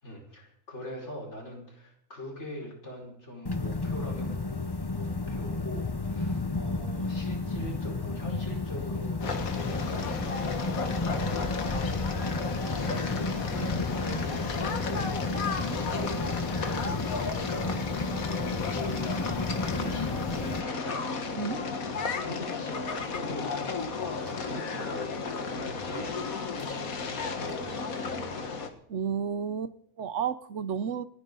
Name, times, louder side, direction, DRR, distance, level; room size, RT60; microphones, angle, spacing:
voice 1, 0.0-4.4 4.9-10.1 10.5-12.0 12.3-18.4 18.7-19.3 19.6-21.0 21.8-28.5, equal, 55° left, 5.4 m, -42 dB
sound 1, 3.5-20.6, left 3 dB, 20° left, 0.7 m, -32 dB
sound 2, 9.2-28.7, left 4 dB, 85° left, 1.9 m, -34 dB
sound 3, 23.7-27.7, equal, 15° right, 4.6 m, -56 dB
voice 2, 28.9-31.0, right 7 dB, 65° right, 1.0 m, -32 dB
29.5 x 10.0 x 3.9 m
omnidirectional pair, 1.4 m